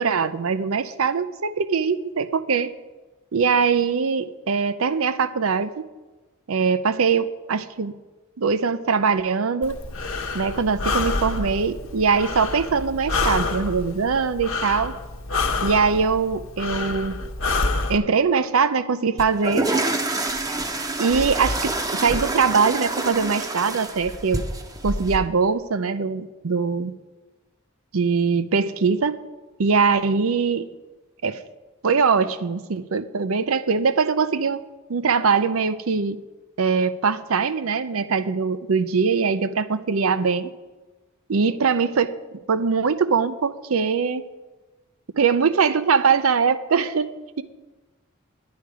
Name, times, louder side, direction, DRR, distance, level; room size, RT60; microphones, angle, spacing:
voice 1, 0.0-2.7 3.3-5.8 6.5-7.9 8.4-9.8 10.3-14.9 15.6-17.3 17.9-19.7 21.0-24.4 24.8-26.9 27.9-29.2 29.6-30.7 31.2-31.4 31.8-34.6 34.9-36.2 36.6-40.5 41.3-42.1 42.5-44.2 45.2-47.1, right 5 dB, 85° right, 13 dB, 0.6 m, -22 dB
Breathing, 9.6-18.0, left 3 dB, 75° left, 0.9 m, -28 dB
sound 1, 19.2-25.2, right 2 dB, 15° right, 0.7 m, -27 dB
10.5 x 10.5 x 4.8 m, 1.2 s
head